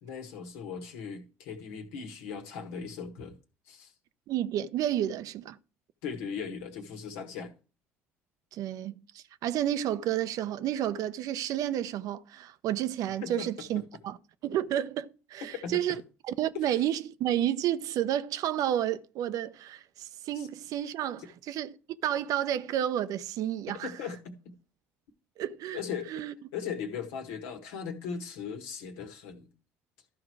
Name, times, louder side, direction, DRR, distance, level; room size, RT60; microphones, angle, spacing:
voice 1, 0.0-3.4 3.7-3.9 6.0-7.5 13.2-13.5 15.6-16.0 16.5-16.8 20.3-20.5 21.2-21.3 23.8-24.3 25.7-26.2 26.5-29.5, left 6 dB, 75° left, 1.6 m, -38 dB
voice 2, 4.3-5.6 8.5-14.2 14.4-16.0 16.3-21.7 22.0-23.9 25.4-25.8 26.1-26.3, right 11 dB, 60° right, 0.6 m, -31 dB
13.0 x 4.7 x 4.7 m
hypercardioid pair, 60°, 7 cm